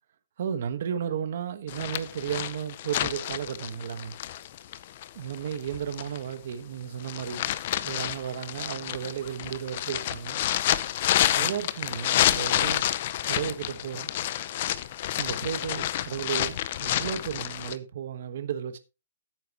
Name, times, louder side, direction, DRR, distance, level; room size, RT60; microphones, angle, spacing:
voice 1, 0.4-4.1 5.1-7.5 7.8-10.4 11.3-12.9 13.2-14.1 15.2-18.8, right 8 dB, 50° right, 1.2 m, -34 dB
sound 1, 1.7-6.3 6.8-17.8, left 12 dB, 35° left, 0.6 m, -29 dB
13.5 x 9.0 x 2.9 m
hypercardioid pair, 175°, 0 cm